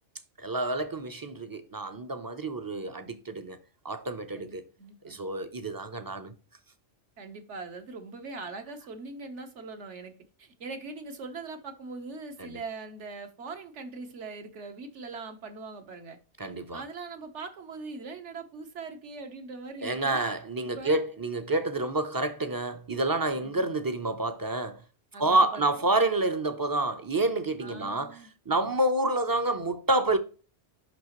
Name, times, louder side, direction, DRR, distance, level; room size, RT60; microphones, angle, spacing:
voice 1, 0.4-3.6 3.8-4.6 5.0-6.3 12.4-12.6 16.4-16.8 19.8-24.8 25.2-30.2, right 2 dB, 25° right, 0.5 m, -28 dB
voice 2, 4.3-5.2 7.2-10.1 10.4-16.2 16.7-20.2 20.7-21.0 23.3-23.7 25.1-25.6 27.6-28.3, right 3 dB, 70° right, 1.3 m, -41 dB
6.1 x 5.7 x 3.0 m
omnidirectional pair, 1.3 m